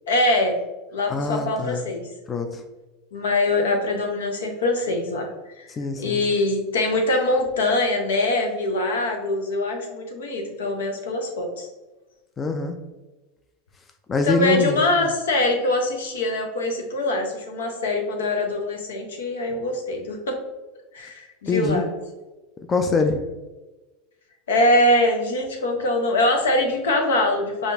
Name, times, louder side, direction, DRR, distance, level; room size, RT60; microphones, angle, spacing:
voice 1, 0.1-0.6 0.9-2.1 3.1-5.7 6.0-11.7 14.2-20.4 20.9-21.9 24.5-27.7, left 1 dB, 85° left, 3 dB, 0.7 m, -23 dB
voice 2, 1.1-1.9 2.3-2.6 5.8-6.2 12.4-12.7 14.1-15.1 21.5-21.8 22.7-23.2, left 4 dB, 25° left, 6 dB, 0.4 m, -24 dB
5.1 x 2.4 x 2.5 m, 1.1 s
hypercardioid pair, 95°, 0 cm